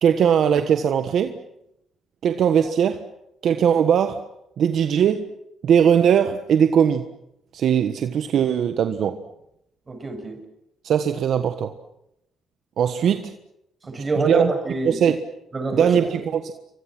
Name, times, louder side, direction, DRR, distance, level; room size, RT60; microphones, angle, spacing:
voice 1, 0.0-1.4 2.2-3.1 3.4-4.2 4.6-5.3 5.6-7.1 7.5-9.2 10.8-11.7 12.8-13.3 14.2-14.5 14.8-15.2 15.7-16.5, right 8 dB, 65° right, 8 dB, 1.3 m, -20 dB
voice 2, 9.9-10.4 13.8-15.1 15.5-15.9, right 2 dB, 30° right, 6 dB, 7.1 m, -26 dB
29.0 x 24.5 x 6.1 m, 0.82 s
cardioid pair, 90°, 0 cm